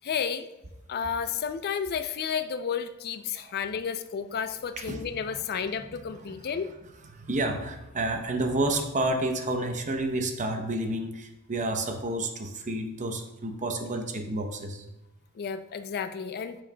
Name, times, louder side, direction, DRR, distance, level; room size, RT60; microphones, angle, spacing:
voice 1, 0.0-0.5 0.9-6.7 15.4-16.6, left 7 dB, 45° left, 10 dB, 0.4 m, -32 dB
voice 2, 4.8-5.4 5.8-6.5 7.1-14.8, right 2 dB, 35° right, 5 dB, 0.8 m, -30 dB
10.5 x 6.3 x 2.2 m, 0.95 s
head